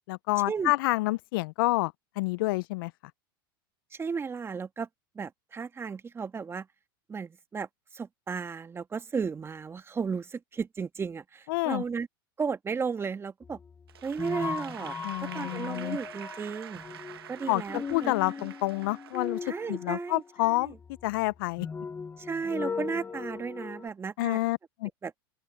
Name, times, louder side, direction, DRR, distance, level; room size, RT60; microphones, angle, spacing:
voice 1, 0.1-2.9 11.5-11.8 15.0-16.0 17.5-17.6 17.9-19.4 19.7-20.7 21.0-21.7 24.2-24.9, left 21 dB, 65° left, 0.7 m, -28 dB
voice 2, 3.9-4.9 5.2-6.7 7.1-12.1 12.4-13.6 14.0-15.0 15.2-16.8 17.3-18.5 19.4-20.8 22.2-24.4 25.0-25.1, right 5 dB, 20° right, 1.7 m, -34 dB
sound 1, 13.4-23.9, left 5 dB, 15° left, 1.1 m, -39 dB
Applause / Crowd, 13.9-20.1, right 10 dB, 85° right, 2.0 m, -47 dB
open air
hypercardioid pair, 100°, 12 cm